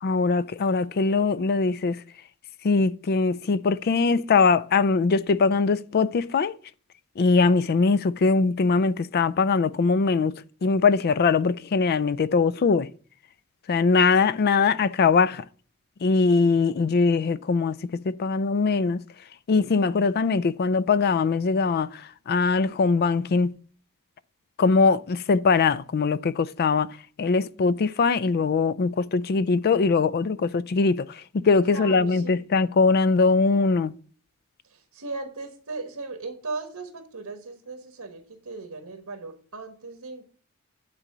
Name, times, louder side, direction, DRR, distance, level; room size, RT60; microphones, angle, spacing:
voice 1, 0.0-2.0 2.6-6.5 7.2-10.3 10.6-12.9 13.7-15.4 16.0-17.8 18.0-19.0 19.5-23.5 24.6-33.9, left 4 dB, 45° left, 0.4 m, -22 dB
voice 2, 16.7-17.2 31.7-32.4 34.6-40.2, right 3 dB, 85° right, 1.3 m, -37 dB
8.9 x 3.9 x 6.7 m
head